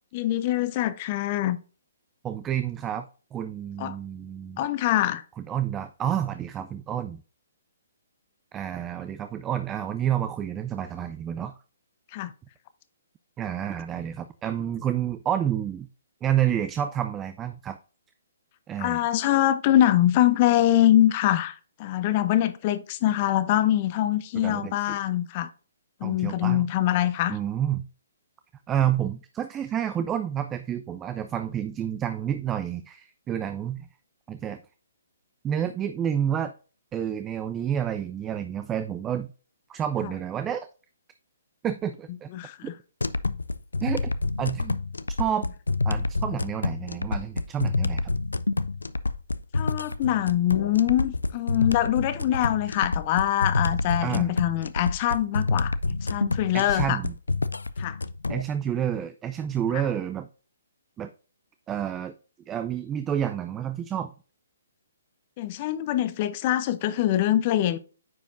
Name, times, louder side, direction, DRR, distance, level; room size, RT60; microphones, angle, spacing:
voice 1, 0.1-1.6 3.8-4.0 4.6-5.2 12.1-12.3 18.8-25.5 26.0-27.4 42.3-42.7 49.5-55.7 56.0-57.0 57.8-58.0 59.7-59.8 65.4-67.8, left 13 dB, 35° left, 0.6 m, -24 dB
voice 2, 2.2-4.6 5.4-7.2 8.5-11.5 13.4-15.9 16.2-17.8 18.7-19.0 24.3-25.0 26.0-26.7 27.3-27.9 28.7-33.9 34.3-34.6 35.4-36.5 36.9-39.3 39.7-40.7 41.6-42.3 42.6-42.7 43.8-44.1 44.4-44.8 45.2-45.5 45.8-48.1 54.0-54.3 56.5-57.1 58.3-60.3 61.0-61.1 61.7-62.1 62.5-64.1, right 10 dB, 15° right, 0.4 m, -29 dB
sound 1, 43.0-58.4, left 3 dB, 90° left, 0.4 m, -28 dB
9.4 x 5.1 x 2.6 m
hypercardioid pair, 140°, 0 cm